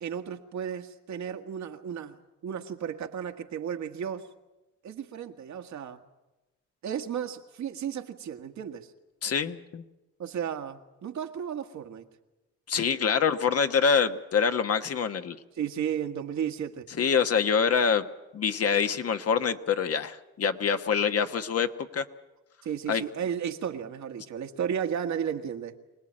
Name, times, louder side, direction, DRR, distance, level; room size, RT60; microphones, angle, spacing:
voice 1, 0.0-2.2 2.4-4.3 4.8-6.0 6.8-8.9 10.2-12.1 15.6-16.9 22.6-25.8, right 8 dB, 70° right, 5 dB, 1.7 m, -34 dB
voice 2, 9.2-9.8 12.7-15.4 17.0-18.1 18.3-22.0 22.9-23.0, left 6 dB, 50° left, 8 dB, 1.2 m, -25 dB
25.0 x 18.5 x 8.8 m, 1.0 s
cardioid pair, 90°, 30 cm